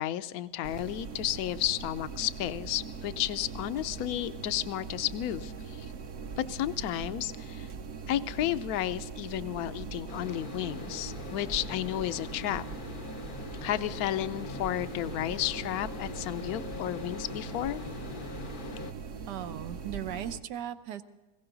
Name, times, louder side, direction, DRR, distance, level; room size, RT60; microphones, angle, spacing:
voice 1, 0.0-5.9 6.4-7.7 8.1-12.6 13.6-17.8, left 13 dB, 70° left, 13 dB, 1.0 m, -32 dB
sound 1, 0.6-20.4, right 5 dB, 50° right, 0.9 m, -41 dB
sound 2, 10.1-18.9, left 5 dB, 45° left, 0.6 m, -43 dB
voice 2, 19.3-21.0, right 10 dB, 80° right, 10 dB, 1.4 m, -37 dB
20.0 x 16.5 x 3.9 m, 1.2 s
omnidirectional pair, 1.8 m